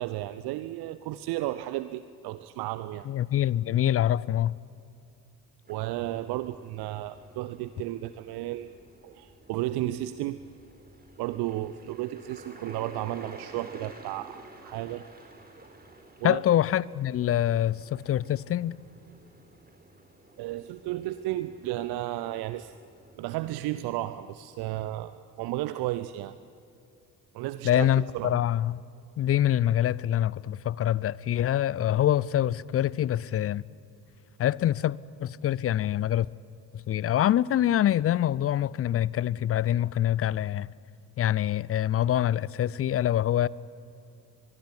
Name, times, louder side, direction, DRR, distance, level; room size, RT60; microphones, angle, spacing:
voice 1, 0.0-3.1 5.7-8.7 9.0-10.4 11.2-15.0 16.2-16.4 20.4-22.7 23.2-26.3 27.3-27.9 28.1-28.4, right 15 dB, 50° right, 0.8 m, -33 dB
voice 2, 3.1-4.5 16.2-18.8 27.6-28.8 29.2-33.6 34.4-36.3 36.7-40.7 41.2-43.5, left 11 dB, 30° left, 0.5 m, -25 dB
sound 1, 5.6-24.0, right 2 dB, 20° right, 5.1 m, -52 dB
24.5 x 22.0 x 9.9 m
figure-of-eight pair, 50°, 48 cm